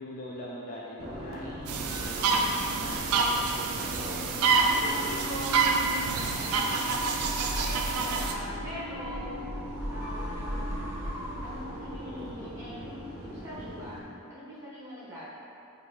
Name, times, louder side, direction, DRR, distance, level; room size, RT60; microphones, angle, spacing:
voice 1, 0.0-4.0 12.1-12.4, left 1 dB, 40° left, -5 dB, 0.4 m, -43 dB
sound 1, 1.0-14.0, equal, 45° right, 0.6 m, -40 dB
sound 2, 1.7-8.3, right 4 dB, 85° right, 0.4 m, -27 dB
voice 2, 4.5-6.9 7.6-9.4 9.9-10.8 11.4-14.0 14.3-15.3, equal, 15° right, -10 dB, 1.1 m, -41 dB
sound 3, 7.0-12.3, equal, 55° left, 1.1 m, -38 dB
5.2 x 2.7 x 2.9 m, 2.7 s
head